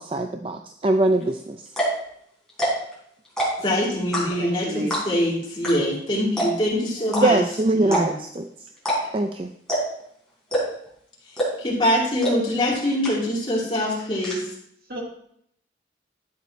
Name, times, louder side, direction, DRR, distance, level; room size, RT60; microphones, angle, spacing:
voice 1, 0.0-1.6 7.2-8.5 9.1-9.5, right 2 dB, 30° right, 6 dB, 0.4 m, -22 dB
sound 1, 1.2-1.3 1.7-2.0 2.5-2.9 3.2-3.7 4.1-4.5 4.9-5.2 5.6-5.7 6.0-6.1 6.4-6.7 7.1-7.2 7.8-8.3 8.8-9.2 9.7-10.0 10.5-10.9 11.4-11.7 12.2-12.3 12.7-12.8 13.0-13.5 13.7-14.3, equal, 5° left, 3.9 m, -24 dB
voice 2, 3.6-7.4 7.7-8.1 11.6-14.4, left 1 dB, 30° left, -6 dB, 3.2 m, -24 dB
voice 3, 4.4-5.0 14.9-15.0, equal, 55° right, 0 dB, 2.1 m, -31 dB
12.5 x 8.6 x 3.1 m, 0.69 s
head